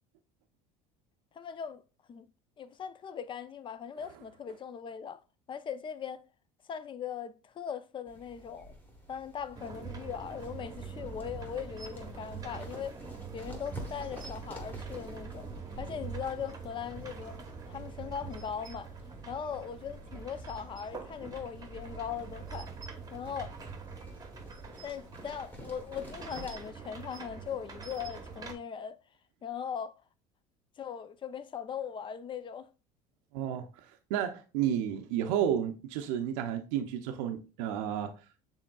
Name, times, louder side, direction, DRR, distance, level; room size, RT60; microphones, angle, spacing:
voice 1, 1.4-1.8 2.1-2.3 2.6-5.2 5.5-6.2 6.7-8.7 9.1-13.0 13.3-15.5 15.8-18.9 19.3-22.7 23.1-23.6 24.8-29.0 29.4-30.0 30.8-32.7, left 7 dB, 30° left, 0.4 m, -39 dB
sound 1, 8.1-26.6, equal, 10° left, 1.3 m, -52 dB
sound 2, 9.5-28.5, right 5 dB, 20° right, 0.9 m, -44 dB
voice 2, 33.3-38.2, right 9 dB, 80° right, 0.6 m, -32 dB
6.1 x 3.7 x 2.3 m
supercardioid pair, 90°, 17 cm